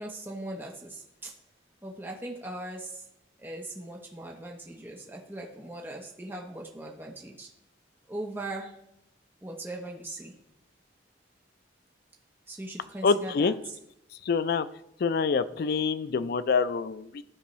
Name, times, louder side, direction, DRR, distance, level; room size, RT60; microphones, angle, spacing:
voice 1, 0.0-1.3 1.8-3.0 3.4-7.5 8.1-8.7 9.4-10.3 12.5-13.8, right 1 dB, 10° right, 0 dB, 0.7 m, -39 dB
voice 2, 13.0-13.5 14.3-14.7 15.0-17.2, left 5 dB, 50° left, 13 dB, 0.3 m, -26 dB
12.0 x 4.5 x 3.1 m, 0.83 s
head